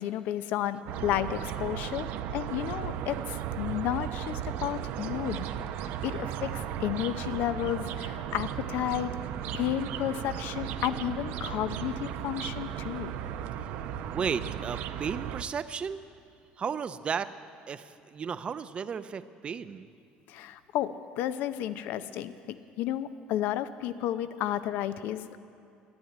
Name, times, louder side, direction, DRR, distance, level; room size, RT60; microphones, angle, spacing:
voice 1, 0.0-2.1 2.3-5.5 6.0-9.1 9.5-13.2 20.3-25.4, left 12 dB, 70° left, 13 dB, 0.6 m, -32 dB
sound 1, 0.9-15.4, right 9 dB, 75° right, 0.7 m, -35 dB
voice 2, 14.1-16.0 16.6-17.3 17.7-19.9, right 6 dB, 35° right, 13 dB, 0.6 m, -34 dB
12.5 x 10.0 x 9.2 m, 2.5 s
cardioid pair, 120°, 3 cm